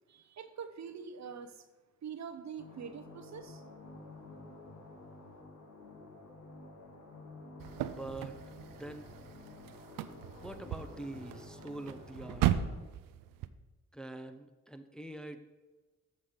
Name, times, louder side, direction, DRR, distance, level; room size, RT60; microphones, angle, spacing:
voice 1, 0.1-1.6 2.0-3.6, right 7 dB, 55° right, 10 dB, 0.8 m, -44 dB
sound 1, 2.6-12.8, left 2 dB, 55° left, 1.6 m, -51 dB
sound 2, 7.6-13.5, right 11 dB, 90° right, 0.5 m, -37 dB
voice 2, 7.9-8.4 8.7-9.1 10.4-12.6 13.9-15.4, right 1 dB, ahead, 7 dB, 0.7 m, -44 dB
7.3 x 6.0 x 5.0 m, 1.2 s
supercardioid pair, 55°, 32 cm